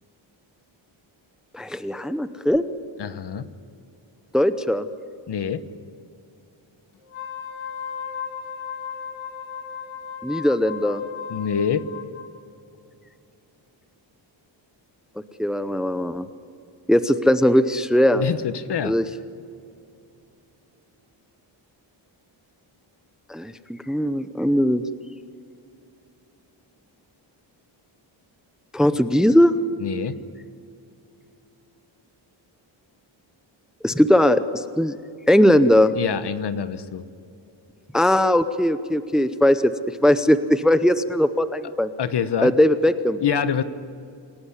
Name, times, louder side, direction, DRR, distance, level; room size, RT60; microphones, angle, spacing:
voice 1, 1.5-2.6 4.3-4.9 10.2-11.0 15.4-16.3 16.9-18.2 18.8-19.0 23.3-24.8 28.7-29.5 33.8-35.0 35.3-35.9 37.9-41.9 42.4-43.2, left 1 dB, ahead, 12 dB, 0.7 m, -19 dB
voice 2, 3.0-3.5 5.3-5.6 11.3-11.9 18.1-19.0 29.8-30.2 36.0-37.0 42.0-42.5 43.2-43.6, left 8 dB, 55° left, 13 dB, 1.2 m, -25 dB
Wind instrument woodwind instrument, 7.0-12.3, left 7 dB, 80° left, 2.9 m, -35 dB
28.0 x 18.0 x 9.8 m, 2.6 s
wide cardioid pair, 150°, 47 cm